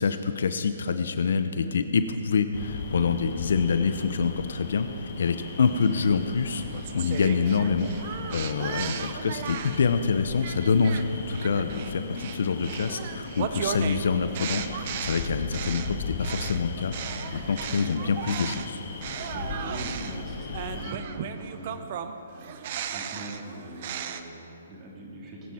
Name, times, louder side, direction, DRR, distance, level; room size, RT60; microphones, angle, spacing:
voice 1, 0.0-16.9 17.3-18.8, left 5 dB, 65° left, 10 dB, 0.8 m, -26 dB
sound 1, 2.5-21.0, left 4 dB, 50° left, 2.0 m, -37 dB
sound 2, 5.8-9.9 10.4-18.7 19.0-24.2, right 8 dB, 45° right, 0.8 m, -36 dB
voice 2, 17.6-17.9 19.2-25.5, right 1 dB, 25° right, -2 dB, 3.3 m, -42 dB
21.5 x 9.6 x 4.5 m, 2.9 s
hypercardioid pair, 140°, 0 cm